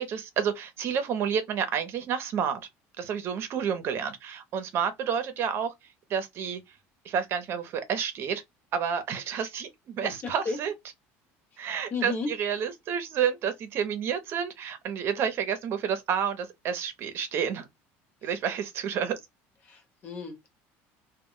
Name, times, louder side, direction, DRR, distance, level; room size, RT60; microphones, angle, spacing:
voice 1, 0.0-2.6 3.0-5.7 6.1-6.6 7.0-8.4 8.7-10.7 11.6-17.7 18.2-19.2, right 7 dB, 45° right, 0.7 m, -30 dB
voice 2, 11.9-12.3 19.7-20.5, left 4 dB, 35° left, 1.0 m, -33 dB
2.2 x 2.2 x 3.7 m
cardioid pair, 150°, 6 cm